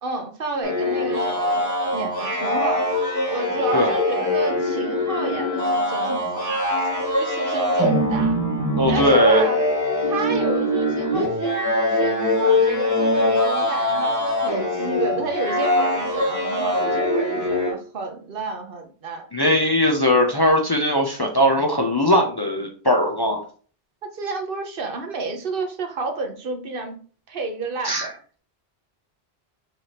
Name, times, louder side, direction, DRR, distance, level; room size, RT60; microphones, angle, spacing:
voice 1, 0.0-3.0 3.3-8.4 8.9-9.6 10.1-19.3 24.0-27.0 27.3-28.1, right 3 dB, 60° right, 4 dB, 1.0 m, -31 dB
sound 1, 0.6-17.7, left 1 dB, 15° right, 1.5 m, -22 dB
voice 2, 8.8-9.4 19.3-23.4 27.8-28.1, equal, 30° left, 1 dB, 0.5 m, -19 dB
5.3 x 3.4 x 2.9 m, 0.42 s
omnidirectional pair, 1.1 m